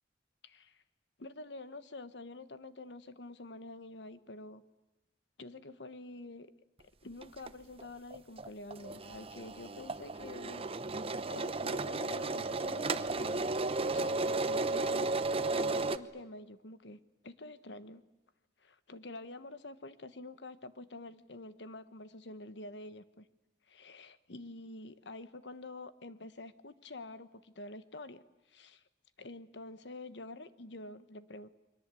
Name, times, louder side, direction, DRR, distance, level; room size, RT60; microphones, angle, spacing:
voice 1, 0.4-0.8 1.2-4.6 5.4-6.5 7.0-10.7 11.0-13.5 13.9-15.1 15.5-18.0 18.6-23.2 23.7-28.8 29.2-31.5, left 2 dB, 70° left, 13 dB, 1.3 m, -47 dB
sound 1, 7.2-7.5 7.8-16.0, right 3 dB, 35° right, 0.9 m, -34 dB
29.0 x 23.0 x 8.4 m, 1.0 s
head